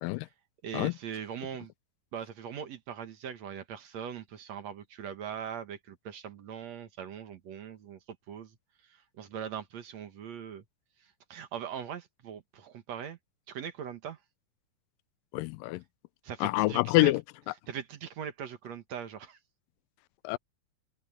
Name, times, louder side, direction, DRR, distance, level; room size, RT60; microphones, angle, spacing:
voice 1, 0.6-1.7 2.1-8.6 8.8-10.6 11.0-13.2 13.5-14.2 16.2-17.1 17.7-19.4, right 8 dB, 60° right, 2.3 m, -41 dB
voice 2, 15.3-15.8 16.4-17.2 20.2-20.4, left 20 dB, 85° left, 2.2 m, -26 dB
open air
omnidirectional pair, 3.9 m